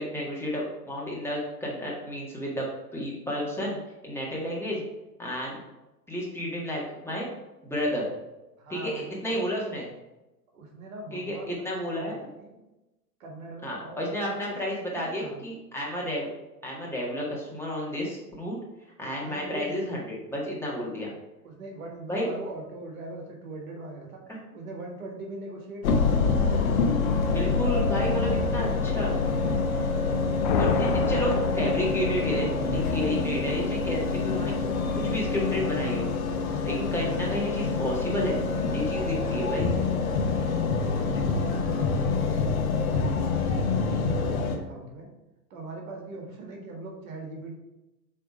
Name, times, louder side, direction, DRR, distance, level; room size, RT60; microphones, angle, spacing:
voice 1, 0.0-3.8 4.0-4.8 5.2-5.6 6.1-7.3 7.6-8.1 8.7-9.9 11.1-11.4 11.6-12.1 13.6-16.3 16.6-18.6 19.0-21.1 22.1-22.3 24.3-24.4 27.3-29.2 30.6-34.5 34.9-36.1 36.6-38.4 38.7-39.8, equal, 5° left, -5 dB, 1.6 m, -31 dB
voice 2, 8.6-9.4 10.5-11.5 11.8-12.5 13.2-15.4 19.1-19.9 21.4-24.2 24.5-26.3 30.0-31.5 39.3-39.8 40.5-43.0 43.5-45.1 45.5-47.5, right 2 dB, 55° right, 1 dB, 1.7 m, -41 dB
sound 1, 25.8-44.6, left 4 dB, 60° left, 1.1 m, -26 dB
sound 2, 30.1-32.6, left 7 dB, 30° left, 0.4 m, -29 dB
7.7 x 3.5 x 4.8 m, 1.0 s
figure-of-eight pair, 100°, 48 cm